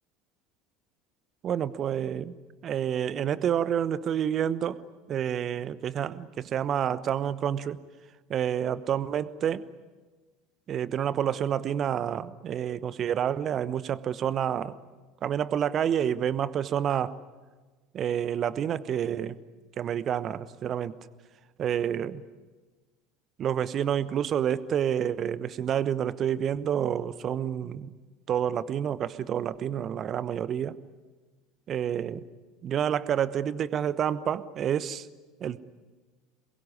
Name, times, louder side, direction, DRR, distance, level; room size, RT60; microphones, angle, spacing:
voice 1, 1.4-2.3 2.6-7.8 8.3-9.6 10.7-14.8 15.2-17.2 17.9-19.4 19.8-20.9 21.6-22.2 23.4-27.9 28.3-30.8 31.7-32.2 32.6-35.1 35.4-35.6, right 9 dB, 40° right, 17 dB, 1.0 m, -28 dB
27.0 x 22.0 x 9.8 m, 1.3 s
figure-of-eight pair, 70°, 0 cm